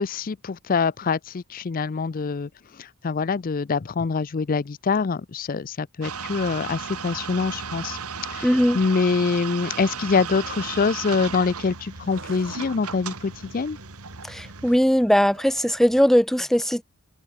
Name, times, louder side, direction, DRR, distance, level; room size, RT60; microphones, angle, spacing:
voice 1, 0.0-8.0 8.3-13.8, left 4 dB, 40° left, 0.4 m, -25 dB
sound 1, 6.0-14.8, right 6 dB, 90° right, 2.7 m, -35 dB
voice 2, 8.4-8.8 14.2-16.8, equal, ahead, 0.6 m, -19 dB
sound 2, 10.2-11.0 11.9-16.1, right 3 dB, 60° right, 6.2 m, -48 dB
head